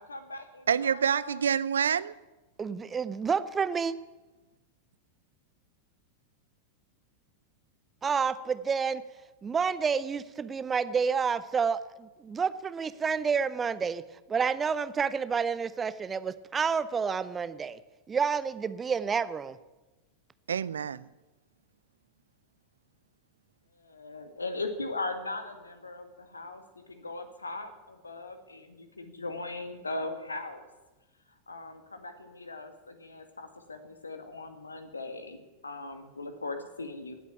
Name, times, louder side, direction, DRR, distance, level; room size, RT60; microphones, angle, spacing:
voice 1, 0.0-1.4 23.8-30.7 31.5-37.1, left 2 dB, 80° left, 1.8 m, -39 dB
voice 2, 0.7-2.1 20.5-21.1, right 7 dB, 70° right, 0.5 m, -27 dB
voice 3, 2.6-3.9 8.0-9.0 9.4-14.0 14.3-17.8 18.1-19.6, right 6 dB, 20° right, 0.7 m, -29 dB
17.5 x 8.3 x 9.1 m
figure-of-eight pair, 90°, 0 cm